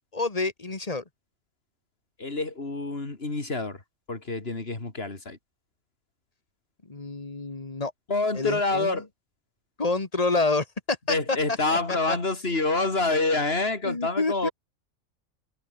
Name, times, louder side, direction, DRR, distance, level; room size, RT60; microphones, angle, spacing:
voice 1, 0.1-1.0 6.9-7.9 8.3-9.0 9.8-11.6 11.9-12.2 13.8-14.5, left 3 dB, 30° left, 1.8 m, -28 dB
voice 2, 2.2-3.8 4.1-5.4 8.1-9.1 11.1-14.5, left 3 dB, 50° left, 3.5 m, -27 dB
omnidirectional pair, 1.4 m